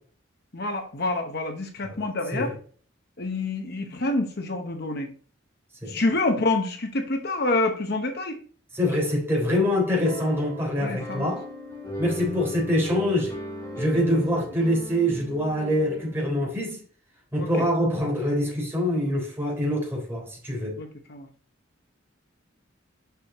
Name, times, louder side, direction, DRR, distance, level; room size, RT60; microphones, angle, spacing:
voice 1, 0.5-2.6 3.2-5.1 5.9-8.4 10.8-11.3 13.9-14.0 17.4-17.5 20.8-21.3, left 2 dB, 55° left, 0.9 m, -27 dB
voice 2, 8.7-11.4 12.0-13.3 13.8-16.8 17.3-20.8, left 1 dB, 10° right, 3.5 m, -25 dB
sound 1, 10.0-16.2, equal, 15° left, 3.0 m, -37 dB
6.9 x 6.2 x 2.9 m
head